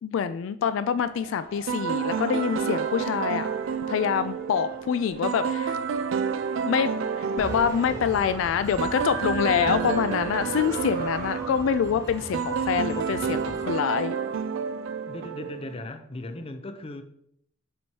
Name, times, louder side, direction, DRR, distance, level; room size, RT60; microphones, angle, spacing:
voice 1, 0.0-3.5 3.9-5.8 6.6-14.1, left 7 dB, 80° left, 0.3 m, -26 dB
sound 1, 1.0-11.5, right 2 dB, 50° right, 0.8 m, -43 dB
sound 2, 1.7-15.9, right 6 dB, 85° right, 0.3 m, -30 dB
sound 3, 7.4-13.6, right 2 dB, 15° right, 1.0 m, -38 dB
voice 2, 15.1-17.0, left 2 dB, 30° left, 0.5 m, -37 dB
7.6 x 4.5 x 2.8 m
head